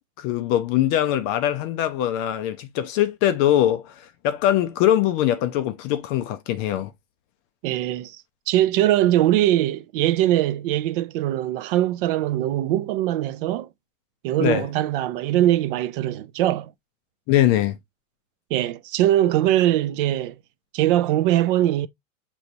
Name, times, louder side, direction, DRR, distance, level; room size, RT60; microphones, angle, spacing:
voice 1, 0.2-6.9 14.4-14.7 17.3-17.8, left 12 dB, 30° left, 0.4 m, -22 dB
voice 2, 7.6-13.7 14.2-16.7 18.5-20.4 20.7-21.9, right 13 dB, 45° right, 0.4 m, -21 dB
6.5 x 3.0 x 2.6 m
hypercardioid pair, 130°, 40 cm